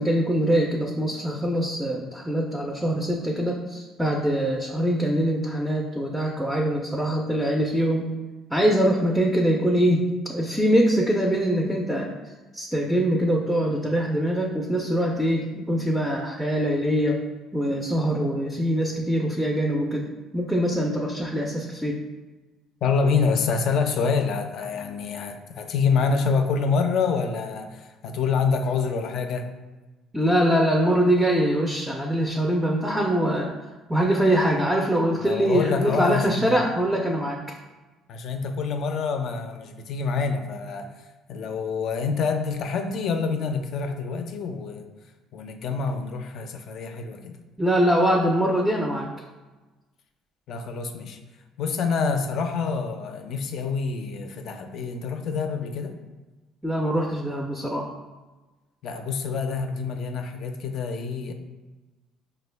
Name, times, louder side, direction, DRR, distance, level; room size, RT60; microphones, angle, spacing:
voice 1, 0.0-8.1 8.5-12.1 12.5-17.2 17.5-22.0 30.1-33.5 33.9-37.4 47.6-49.1 56.6-57.9, equal, 5° right, 0 dB, 0.4 m, -23 dB
voice 2, 22.8-29.5 35.2-36.6 38.1-40.9 41.3-44.9 45.3-47.4 50.5-51.2 51.6-56.0 58.8-61.3, left 5 dB, 55° left, 6 dB, 0.4 m, -26 dB
5.2 x 2.2 x 3.2 m, 1.2 s
cardioid pair, 125°, 0 cm